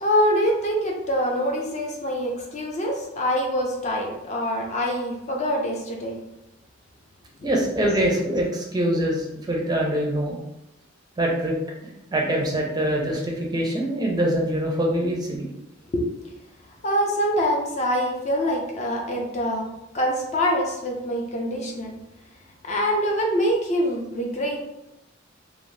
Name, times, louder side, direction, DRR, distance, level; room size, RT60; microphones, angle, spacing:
voice 1, 0.0-6.2 7.4-7.5 15.9-16.1 16.8-19.6 19.9-21.9 22.6-24.6, equal, 35° left, 0 dB, 0.5 m, -25 dB
voice 2, 7.4-10.4 11.2-11.6 12.1-15.4, right 1 dB, 20° right, -1 dB, 0.4 m, -24 dB
2.6 x 2.1 x 3.1 m, 0.89 s
head